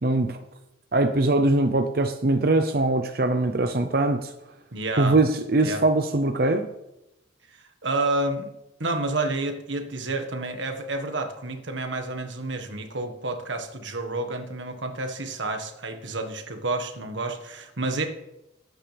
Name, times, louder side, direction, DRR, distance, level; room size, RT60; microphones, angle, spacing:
voice 1, 0.0-0.4 0.9-4.3 5.0-6.7, right 2 dB, 55° right, 6 dB, 0.7 m, -22 dB
voice 2, 4.7-5.2 5.6-5.8 7.5-8.5 8.8-18.1, right 2 dB, 85° right, 5 dB, 1.6 m, -29 dB
20.0 x 9.1 x 3.5 m, 0.91 s
head